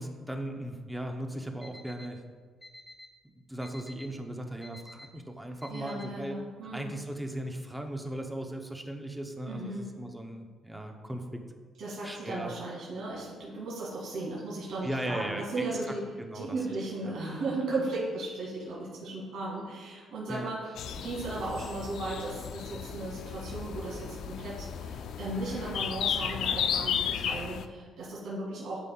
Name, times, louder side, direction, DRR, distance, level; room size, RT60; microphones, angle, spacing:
voice 1, 0.0-2.2 3.2-6.4 6.7-11.4 12.0-12.5 14.8-15.7 16.2-16.5 17.0-17.2 20.3-20.5, right 1 dB, 5° right, 3 dB, 0.7 m, -37 dB
Alarm, 1.6-2.1 2.6-3.1 3.6-4.1 4.6-5.1 5.6-6.1, left 1 dB, 15° left, 1.6 m, -48 dB
voice 2, 5.7-6.9 9.5-10.0 11.8-16.1 16.3-28.8, right 2 dB, 75° right, -6 dB, 2.1 m, -36 dB
sound 1, 20.8-27.7, left 8 dB, 75° left, 0.4 m, -34 dB
12.0 x 5.3 x 2.3 m, 1.6 s
cardioid pair, 135°, 0 cm